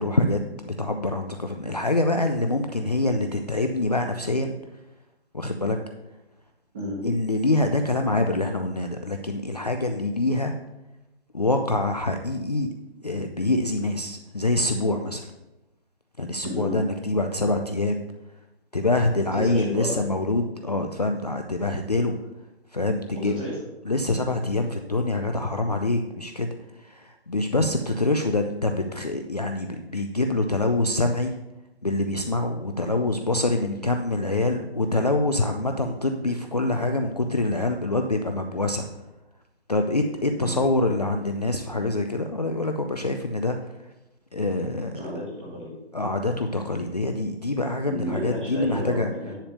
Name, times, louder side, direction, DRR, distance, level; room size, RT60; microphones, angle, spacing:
voice 1, 0.0-4.5 5.3-5.8 7.0-10.5 11.3-12.7 13.0-15.3 16.2-18.0 18.7-22.2 22.7-23.4 23.9-31.4 31.8-38.9 39.7-43.6 44.3-45.0 45.9-49.1, left 2 dB, 40° left, 5 dB, 0.4 m, -25 dB
voice 2, 16.4-16.8 19.3-20.0 23.1-23.6 40.3-40.6 44.9-45.7 47.9-49.4, equal, 10° right, -6 dB, 1.2 m, -32 dB
10.0 x 3.4 x 6.7 m, 0.94 s
hypercardioid pair, 175°, 32 cm